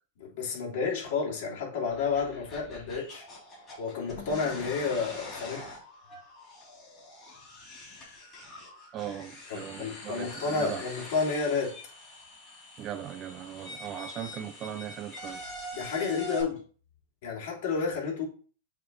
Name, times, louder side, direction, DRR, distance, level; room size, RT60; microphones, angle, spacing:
voice 1, 0.2-3.2 3.8-5.7 9.5-11.8 15.7-16.6 17.2-18.3, left 5 dB, 55° left, 3.0 m, -31 dB
sound 1, 1.9-16.4, left 1 dB, 20° left, 3.3 m, -44 dB
voice 2, 8.9-10.8 12.8-15.4, right 10 dB, 30° right, 0.4 m, -39 dB
7.7 x 3.3 x 3.9 m
supercardioid pair, 145°, 0 cm